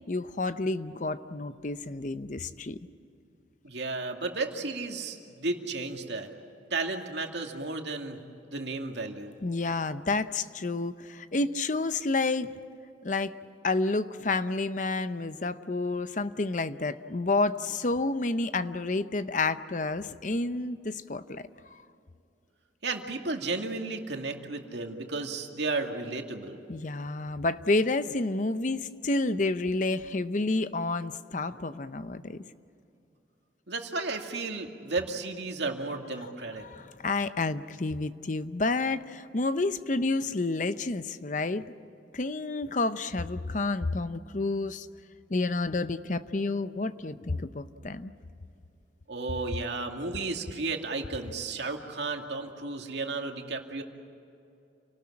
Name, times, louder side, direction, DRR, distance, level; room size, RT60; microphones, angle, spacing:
voice 1, 0.1-2.8 9.4-12.5 13.0-13.3 13.6-21.5 26.7-32.4 36.6-41.7 42.1-44.9 45.3-48.1, left 3 dB, 45° left, 12 dB, 0.7 m, -30 dB
voice 2, 3.6-6.3 6.7-8.2 8.4-9.3 22.8-26.6 33.7-36.6 49.1-53.8, right 3 dB, 70° right, 3 dB, 2.4 m, -33 dB
29.0 x 19.0 x 8.7 m, 2.7 s
head